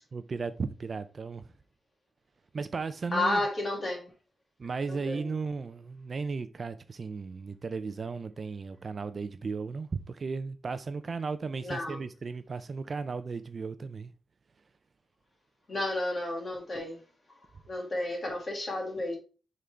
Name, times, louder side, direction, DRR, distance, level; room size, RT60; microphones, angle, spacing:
voice 1, 0.1-1.4 2.5-3.4 4.6-14.1, right 4 dB, 40° right, 0.4 m, -35 dB
voice 2, 3.1-4.1 4.9-5.3 11.6-12.0 15.7-17.0 17.7-19.2, left 2 dB, 30° left, 2.0 m, -31 dB
6.7 x 3.8 x 4.3 m
wide cardioid pair, 175°, 0 cm